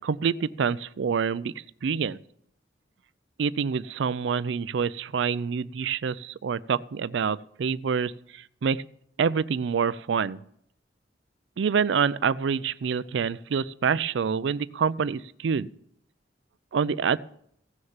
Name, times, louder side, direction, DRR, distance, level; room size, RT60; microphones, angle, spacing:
voice 1, 0.0-1.5 1.8-2.2 3.4-8.8 9.2-10.4 11.6-15.7 16.7-17.2, right 6 dB, 70° right, 18 dB, 0.4 m, -27 dB
15.5 x 6.5 x 7.2 m, 0.70 s
head